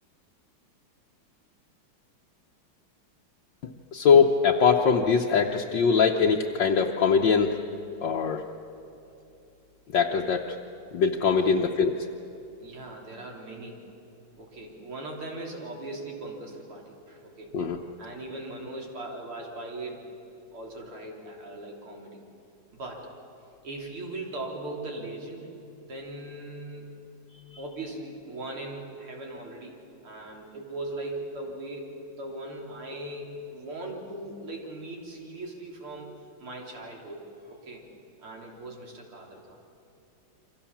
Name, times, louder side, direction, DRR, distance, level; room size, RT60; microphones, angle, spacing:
voice 1, 3.6-7.6 8.0-8.4 9.9-10.5 10.9-11.9 17.5-17.8, left 6 dB, 65° left, 1 dB, 1.6 m, -22 dB
voice 2, 12.6-13.8 14.4-17.5 18.0-20.0 20.5-22.2 22.7-23.1 23.6-25.5 25.9-27.0 27.6-29.8 30.0-36.1 36.4-37.8 38.2-39.6, right 2 dB, 90° right, -1 dB, 4.2 m, -39 dB
28.0 x 25.0 x 7.3 m, 2.8 s
omnidirectional pair, 2.3 m